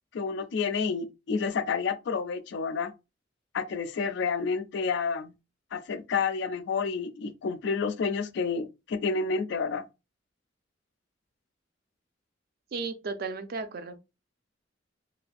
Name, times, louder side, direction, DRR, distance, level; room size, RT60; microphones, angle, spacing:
voice 1, 0.1-2.9 3.5-5.3 5.7-9.9, left 5 dB, 65° left, 0.4 m, -29 dB
voice 2, 12.7-14.0, right 4 dB, 55° right, 0.4 m, -34 dB
2.5 x 2.2 x 2.4 m
head